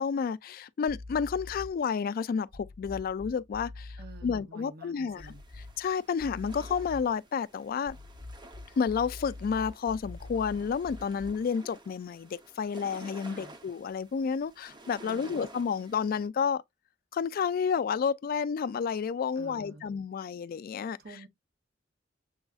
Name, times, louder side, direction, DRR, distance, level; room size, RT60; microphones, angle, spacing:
voice 1, 0.0-4.0 4.2-5.3 5.8-8.0 8.8-16.6 17.1-21.0, left 6 dB, 50° left, 0.3 m, -30 dB
sound 1, 0.9-1.8 2.5-4.4 5.2-5.9 6.2-7.2 7.8-11.5, left 2 dB, 80° right, 3.3 m, -45 dB
voice 2, 4.0-5.4 13.2-13.6 15.0-15.5 19.3-19.9 21.0-21.3, right 2 dB, 55° right, 0.8 m, -49 dB
sound 2, 5.2-16.3, right 2 dB, 25° right, 0.7 m, -51 dB
6.9 x 2.5 x 2.3 m
head